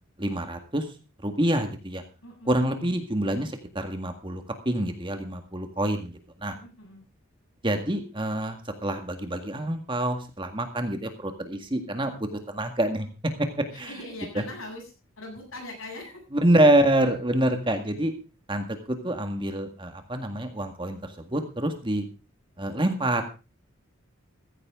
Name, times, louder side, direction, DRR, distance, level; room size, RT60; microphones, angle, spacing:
voice 1, 0.2-0.8 1.2-2.0 2.5-6.1 6.4-6.6 7.6-12.1 12.5-13.1 13.7-13.9 16.3-18.1 18.5-22.1 22.6-23.2, right 1 dB, 25° right, 6 dB, 1.8 m, -26 dB
voice 2, 2.2-2.7 6.5-7.0 13.7-14.8 15.2-16.2, left 2 dB, 75° left, 2 dB, 7.6 m, -41 dB
15.0 x 15.0 x 3.7 m, 0.32 s
head